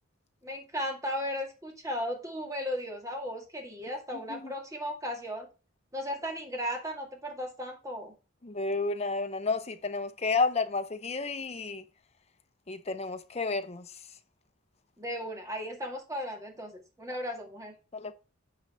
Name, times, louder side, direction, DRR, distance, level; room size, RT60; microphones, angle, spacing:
voice 1, 0.4-5.5 5.9-8.1 15.0-17.7, equal, 15° right, 2.0 m, -36 dB
voice 2, 8.4-11.8 12.7-13.9 17.9-18.1, left 3 dB, 30° left, 0.7 m, -31 dB
9.6 x 3.9 x 5.5 m
head